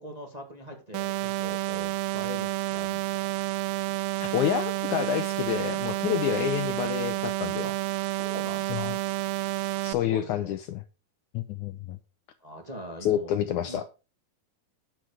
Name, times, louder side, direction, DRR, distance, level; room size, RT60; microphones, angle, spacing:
voice 1, 0.0-3.3 7.6-7.7 8.1-9.0 9.8-10.5 12.4-13.9, equal, 30° right, 2 dB, 0.7 m, -42 dB
sound 1, 0.9-9.9, right 17 dB, 85° right, 2.5 m, -30 dB
voice 2, 4.2-7.7 8.7-9.0 9.6-10.8 11.3-12.0 13.0-13.8, left 10 dB, 80° left, 9 dB, 1.7 m, -29 dB
10.0 x 7.5 x 4.9 m, 0.31 s
omnidirectional pair, 4.2 m